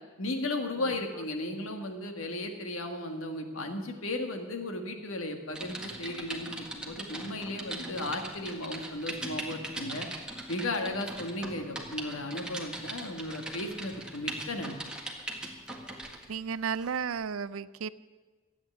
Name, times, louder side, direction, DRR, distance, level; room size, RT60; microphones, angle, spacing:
voice 1, 0.2-10.1 10.5-14.8, left 2 dB, 90° left, 5 dB, 1.7 m, -35 dB
Typing, 5.5-16.3 16.8-17.0, right 1 dB, 5° right, 1.7 m, -40 dB
voice 2, 16.3-17.9, right 6 dB, 85° right, 17 dB, 0.5 m, -33 dB
13.5 x 8.7 x 9.3 m, 1.4 s
head